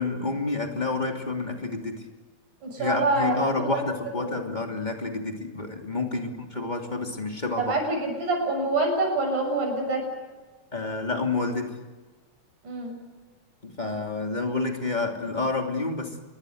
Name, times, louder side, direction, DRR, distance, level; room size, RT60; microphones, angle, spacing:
voice 1, 0.0-2.1 2.8-7.7 10.7-11.8 13.6-16.2, left 3 dB, 15° left, 2 dB, 2.7 m, -29 dB
voice 2, 2.6-3.3 3.6-3.7 4.2-4.4 7.6-10.0 12.6-13.0, right 2 dB, 75° right, 3 dB, 8.3 m, -26 dB
27.0 x 21.5 x 8.0 m, 1.3 s
omnidirectional pair, 3.6 m